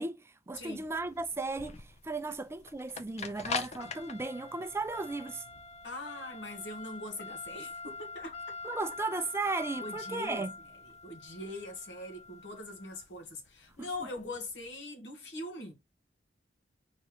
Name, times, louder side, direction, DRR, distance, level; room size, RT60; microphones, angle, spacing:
voice 1, 0.0-5.4 8.6-10.5 13.8-13.9, right 3 dB, 15° right, 0.4 m, -35 dB
sound 1, 0.5-14.7, left 4 dB, 40° left, 0.5 m, -43 dB
voice 2, 5.8-8.3 9.8-10.4 11.0-15.7, left 2 dB, 75° left, 1.5 m, -42 dB
4.1 x 3.1 x 3.8 m
head